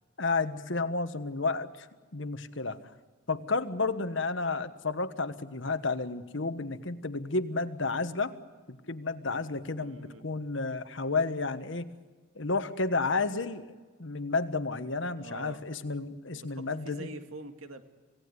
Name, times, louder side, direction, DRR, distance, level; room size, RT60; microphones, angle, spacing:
voice 1, 0.2-1.9 2.1-2.8 3.3-8.3 8.7-11.9 12.3-13.7 14.0-17.1, left 3 dB, 60° left, 11 dB, 1.3 m, -31 dB
voice 2, 9.8-10.2 15.2-15.6 16.3-17.8, right 2 dB, 85° right, 7 dB, 2.3 m, -45 dB
27.5 x 17.5 x 9.8 m, 1.4 s
head